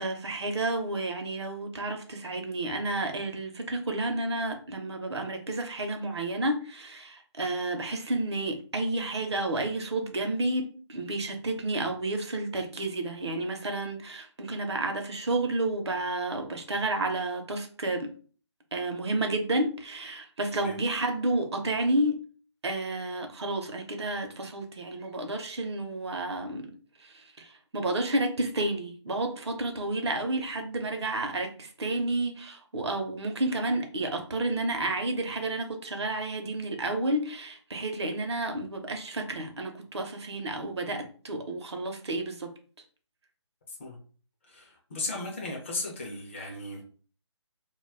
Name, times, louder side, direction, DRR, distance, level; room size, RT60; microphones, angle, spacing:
voice 1, 0.0-18.1 18.7-22.2 22.6-26.7 27.0-42.5, right 2 dB, 65° right, 0.7 m, -31 dB
voice 2, 44.4-46.8, left 2 dB, 25° left, 0.5 m, -36 dB
2.2 x 2.1 x 3.2 m
figure-of-eight pair, 155°, 15 cm